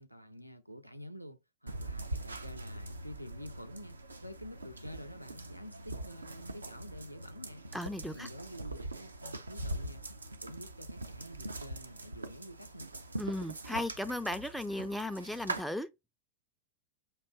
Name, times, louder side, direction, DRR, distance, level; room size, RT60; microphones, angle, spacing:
voice 1, 0.0-7.7 8.1-10.0 10.3-12.9, equal, 90° left, 0.4 m, -49 dB
sound 1, 1.7-15.6, right 2 dB, 80° right, 0.5 m, -42 dB
voice 2, 7.7-8.3 13.2-15.9, left 1 dB, ahead, 0.4 m, -36 dB
5.4 x 2.6 x 3.3 m
figure-of-eight pair, 90°, 0 cm